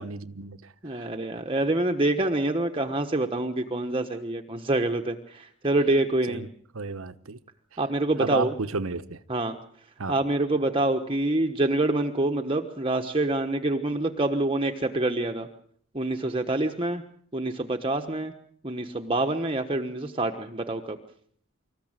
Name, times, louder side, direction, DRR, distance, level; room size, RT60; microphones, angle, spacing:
voice 1, 0.0-1.1 6.3-6.5 6.7-7.4 8.2-9.2 10.0-10.1 17.9-18.1, right 4 dB, 80° right, 1.1 m, -33 dB
voice 2, 0.8-6.4 7.8-8.5 9.3-9.5 10.1-15.5 15.9-17.0 17.3-18.3 18.6-21.0, right 2 dB, 25° right, 1.2 m, -26 dB
26.0 x 14.5 x 9.0 m
head